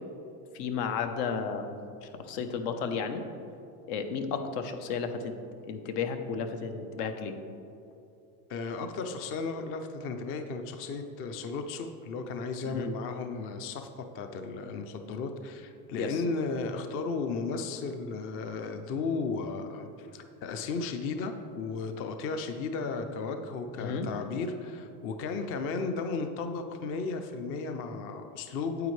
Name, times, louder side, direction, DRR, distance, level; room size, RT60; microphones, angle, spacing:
voice 1, 0.5-1.8 2.0-3.2 3.9-5.3 5.7-7.3 12.7-12.9 16.0-16.2 23.8-24.1, left 6 dB, 75° left, 7 dB, 1.0 m, -33 dB
voice 2, 8.5-28.9, left 4 dB, 30° left, 7 dB, 0.4 m, -34 dB
9.4 x 8.0 x 3.2 m, 2.7 s
supercardioid pair, 130°, 47 cm